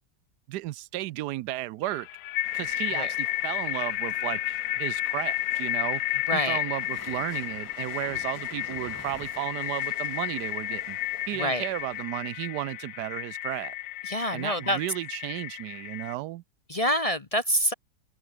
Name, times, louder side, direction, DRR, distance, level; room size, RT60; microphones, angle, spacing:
voice 1, 0.5-2.1 2.5-13.7 14.3-16.4, right 16 dB, 85° right, 1.2 m, -34 dB
sound 1, 1.8-16.1, left 15 dB, 90° left, 1.2 m, -32 dB
sound 2, 2.4-12.1, left 2 dB, 60° left, 7.7 m, -51 dB
sound 3, 5.4-10.5, right 1 dB, 10° right, 2.3 m, -50 dB
voice 2, 6.3-6.6 11.3-11.6 14.0-14.8 16.7-17.7, equal, 30° left, 0.8 m, -26 dB
open air
omnidirectional pair, 1.7 m